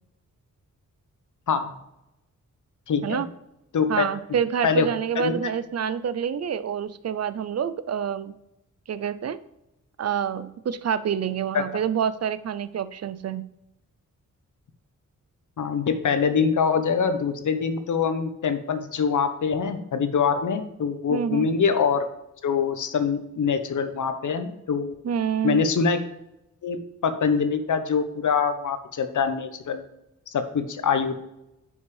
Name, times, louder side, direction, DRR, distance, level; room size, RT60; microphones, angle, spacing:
voice 1, 2.9-3.2 3.7-4.1 4.6-4.9 5.2-5.3 11.5-11.6 15.6-22.1 22.4-24.9 25.4-26.0 26.6-26.8 27.0-29.8 30.3-31.2, left 6 dB, 70° left, 9 dB, 0.9 m, -24 dB
voice 2, 3.9-8.3 8.9-9.4 10.0-13.5 21.1-21.5 25.0-25.6, right 8 dB, 55° right, 14 dB, 0.5 m, -27 dB
9.7 x 5.4 x 3.3 m, 0.89 s
wide cardioid pair, 90°, 31 cm